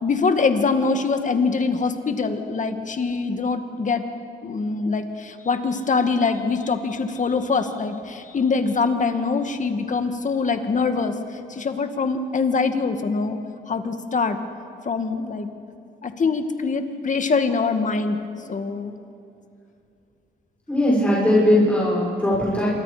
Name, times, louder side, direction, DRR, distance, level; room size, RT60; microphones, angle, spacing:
voice 1, 0.0-4.0 4.4-11.2 11.5-13.4 13.7-14.4 14.9-15.5 16.0-18.2 18.5-19.0, left 4 dB, 40° left, 7 dB, 2.0 m, -23 dB
voice 2, 20.7-22.7, left 1 dB, 5° left, -6 dB, 6.0 m, -19 dB
27.0 x 24.0 x 5.1 m, 2.5 s
cardioid pair, 90°, 20 cm